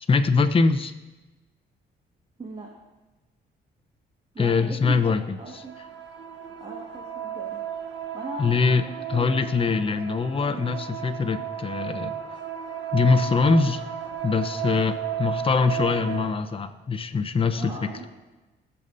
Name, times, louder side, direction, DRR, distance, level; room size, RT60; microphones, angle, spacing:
voice 1, 0.1-0.9 4.4-5.6 8.4-8.8 9.1-12.1 12.9-13.8 14.2-17.7, left 4 dB, 25° left, 7 dB, 0.8 m, -23 dB
voice 2, 4.3-5.8 6.6-7.6 8.1-9.3 10.5-10.7 17.6-18.0, right 2 dB, 30° right, -1 dB, 1.7 m, -38 dB
sound 1, 5.4-16.3, right 9 dB, 70° right, 1.2 m, -34 dB
20.5 x 6.9 x 2.7 m, 1.1 s
cardioid pair, 90°, 20 cm